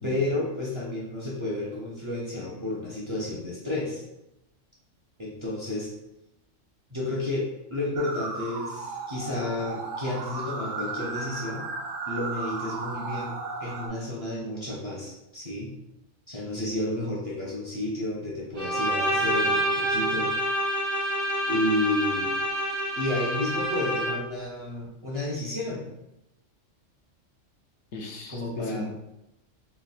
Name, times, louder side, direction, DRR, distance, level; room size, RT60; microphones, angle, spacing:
voice 1, 0.0-4.0 5.2-5.9 6.9-11.7 12.1-15.7 16.3-20.3 21.5-22.3 23.0-25.8 28.3-28.9, left 1 dB, 30° right, -5 dB, 0.7 m, -31 dB
sound 1, 8.0-13.9, right 3 dB, 80° right, 1.0 m, -35 dB
Bowed string instrument, 18.6-24.4, equal, 45° right, 1.1 m, -27 dB
voice 2, 27.9-28.9, left 2 dB, 65° left, 1 dB, 0.9 m, -37 dB
3.3 x 2.3 x 4.1 m, 0.87 s
omnidirectional pair, 1.3 m